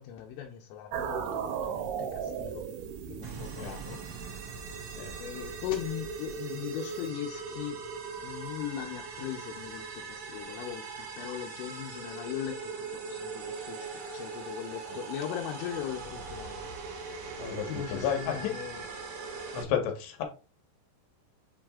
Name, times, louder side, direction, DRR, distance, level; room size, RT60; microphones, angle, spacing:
voice 1, 0.0-2.7 3.1-4.0 5.2-7.8 8.2-16.6 17.5-18.9, left 11 dB, 85° left, 3.3 m, -39 dB
sound 1, 0.9-7.1, right 7 dB, 80° right, 2.3 m, -38 dB
sound 2, 3.2-19.6, right 4 dB, 65° right, 1.9 m, -40 dB
voice 2, 17.4-18.6 19.5-20.2, left 8 dB, 65° left, 3.1 m, -32 dB
7.3 x 6.1 x 2.4 m
omnidirectional pair, 5.7 m